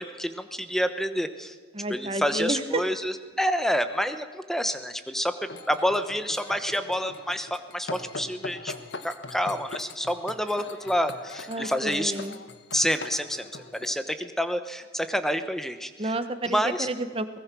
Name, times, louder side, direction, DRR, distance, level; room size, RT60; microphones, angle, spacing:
voice 1, 0.0-1.6 1.9-8.7 9.0-12.1 12.7-15.9 16.5-16.9, equal, ahead, 9 dB, 1.0 m, -28 dB
voice 2, 1.7-2.8 11.5-12.4 16.0-17.4, right 2 dB, 30° right, 10 dB, 1.2 m, -30 dB
sound 1, 5.5-13.9, left 3 dB, 75° left, 1.3 m, -41 dB
22.0 x 20.0 x 6.2 m, 1.5 s
head